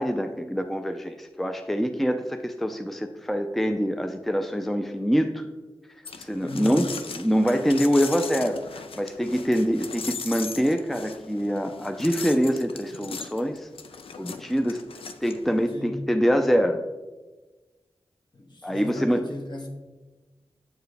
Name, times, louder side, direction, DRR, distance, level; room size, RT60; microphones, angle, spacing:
voice 1, 0.0-5.4 6.2-6.9 7.1-8.6 9.0-13.7 14.2-14.8 15.2-16.8 18.6-19.3, equal, ahead, 6 dB, 0.4 m, -25 dB
sound 1, 6.0-15.7, left 5 dB, 85° left, 0.4 m, -38 dB
voice 2, 6.4-6.9 15.7-16.1 18.3-19.7, left 1 dB, 55° left, 1 dB, 1.2 m, -36 dB
7.8 x 4.6 x 3.3 m, 1.2 s
wide cardioid pair, 60°, 9 cm